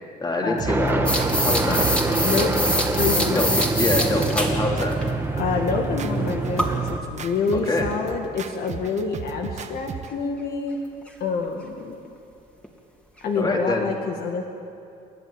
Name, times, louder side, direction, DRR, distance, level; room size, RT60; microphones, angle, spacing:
voice 1, 0.2-1.9 3.3-3.5 3.8-5.0 7.5-7.9 13.4-13.9, left 2 dB, 25° left, 0 dB, 3.5 m, -25 dB
sound 1, 0.6-10.2, right 7 dB, 45° right, 1.4 m, -36 dB
Vehicle Helicopter Flyby Close Stereo, 0.7-7.0, right 3 dB, 10° right, 1.7 m, -25 dB
sound 2, 1.1-4.5 4.9-5.0 6.6-6.8 7.9-8.0 11.1-11.2 11.4-11.5 12.1-12.2 12.6-12.7 13.2-13.3, equal, 5° left, 2.9 m, -24 dB
voice 2, 2.2-2.7 3.0-3.6 3.9-4.1 5.4-10.9 11.2-12.0 13.2-14.4, left 4 dB, 65° left, 2 dB, 1.9 m, -27 dB
29.0 x 11.0 x 9.0 m, 2.6 s
cardioid pair, 110°, 17 cm